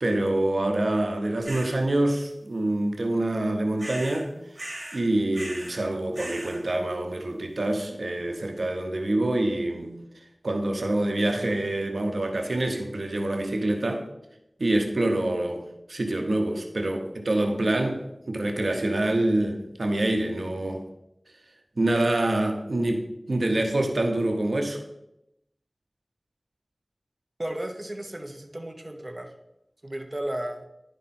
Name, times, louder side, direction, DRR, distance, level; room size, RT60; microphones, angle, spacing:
voice 1, 0.0-4.3 4.9-10.0 10.4-14.1 14.6-20.8 21.8-24.8, right 1 dB, 80° right, 4 dB, 0.9 m, -26 dB
sound 1, 1.5-1.8 3.8-4.2 4.6-5.0 5.3-5.8 6.1-6.6, right 1 dB, 55° right, 2.5 m, -38 dB
voice 2, 27.4-29.3 29.8-30.6, right 1 dB, 40° right, 4 dB, 0.9 m, -34 dB
10.5 x 5.1 x 4.3 m, 0.85 s
wide cardioid pair, 50°, 0 cm